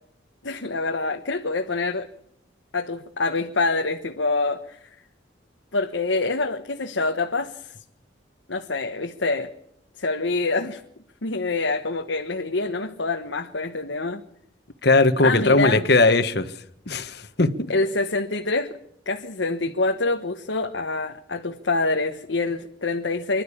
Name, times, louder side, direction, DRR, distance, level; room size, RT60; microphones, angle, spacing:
voice 1, 0.4-2.1 2.7-4.8 5.7-7.7 8.5-9.5 10.0-10.8 11.2-14.2 15.2-15.8 17.7-18.7 19.1-23.4, left 3 dB, 80° left, 1.3 m, -26 dB
voice 2, 14.8-16.5 16.9-17.5, left 2 dB, 60° left, 1.4 m, -19 dB
25.5 x 12.0 x 8.6 m
head